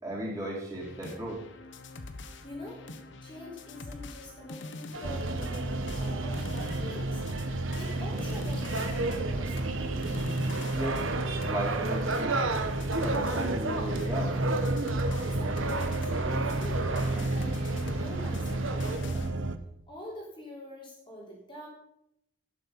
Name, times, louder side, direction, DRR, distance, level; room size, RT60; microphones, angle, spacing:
voice 1, 0.0-1.4 10.7-11.0 11.4-12.4 12.9-14.4, right 1 dB, 20° right, -5 dB, 4.4 m, -35 dB
sound 1, 0.8-19.3, left 2 dB, 65° left, 1.2 m, -45 dB
voice 2, 2.4-2.9 3.2-9.7 15.3-19.3 19.9-21.7, left 1 dB, 25° left, -3 dB, 3.3 m, -45 dB
sound 2, 4.9-19.0, right 3 dB, 80° right, 1.5 m, -35 dB
sound 3, 5.0-19.6, right 2 dB, 60° right, 0.8 m, -32 dB
12.0 x 9.7 x 5.5 m, 0.77 s
head